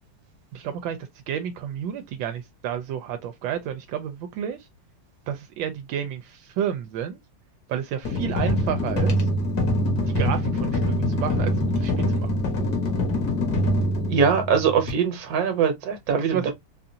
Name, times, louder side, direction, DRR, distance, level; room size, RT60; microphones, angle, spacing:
voice 1, 0.5-1.0 1.3-4.6 5.3-7.2 7.7-9.3 10.1-12.3 16.1-16.5, right 9 dB, 80° right, 1.3 m, -31 dB
sound 1, 8.0-14.9, left 1 dB, 55° left, 1.7 m, -24 dB
voice 2, 14.1-16.5, right 6 dB, 55° right, 1.3 m, -22 dB
4.0 x 2.5 x 2.7 m
omnidirectional pair, 2.1 m